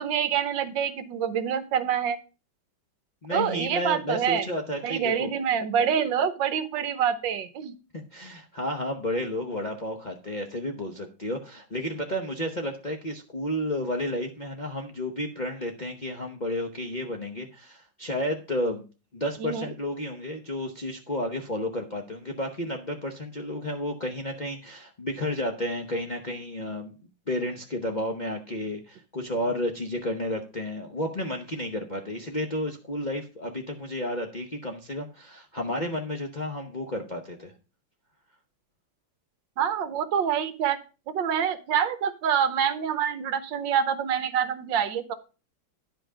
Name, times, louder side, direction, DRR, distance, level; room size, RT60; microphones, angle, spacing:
voice 1, 0.0-2.2 3.3-4.5 4.8-7.7 19.4-19.7 39.6-40.8 41.1-45.1, right 8 dB, 70° right, 12 dB, 1.5 m, -26 dB
voice 2, 3.2-5.3 7.9-18.8 19.1-26.9 27.3-37.5, left 1 dB, 35° left, 2 dB, 0.8 m, -32 dB
10.5 x 5.6 x 4.9 m, 0.33 s
omnidirectional pair, 2.1 m